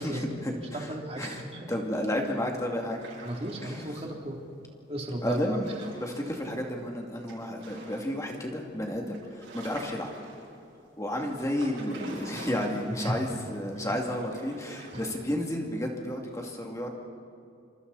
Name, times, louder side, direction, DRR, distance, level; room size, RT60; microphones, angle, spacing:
voice 1, 0.0-0.9 1.2-1.4 1.7-3.0 3.6-3.9 5.2-5.7 5.9-10.1 11.0-16.9, left 1 dB, 15° left, 0 dB, 2.6 m, -32 dB
voice 2, 0.7-1.7 3.2-4.4 4.9-5.6 13.0-13.1 13.8-13.9, right 1 dB, 30° right, -1 dB, 3.2 m, -35 dB
sound 1, 2.8-4.1 5.4-6.5 7.3-8.3 8.7-8.8 9.1-10.7 11.3-13.3 13.5-13.6 14.2-15.1, right 2 dB, 90° right, 7.1 m, -46 dB
28.5 x 26.5 x 4.2 m, 2.6 s
head